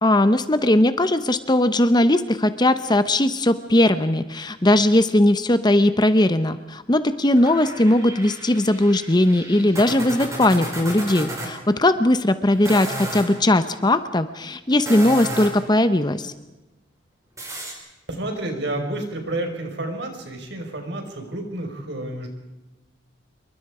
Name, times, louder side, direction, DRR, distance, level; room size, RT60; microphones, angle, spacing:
voice 1, 0.0-16.3, left 1 dB, 20° left, 11 dB, 0.8 m, -19 dB
sound 1, 7.4-11.5 12.5-13.3 14.7-15.7 17.4-17.7, right 1 dB, 15° right, 5.0 m, -33 dB
voice 2, 18.1-22.3, right 1 dB, 60° right, 4 dB, 5.1 m, -30 dB
27.0 x 23.5 x 4.9 m, 1.0 s
head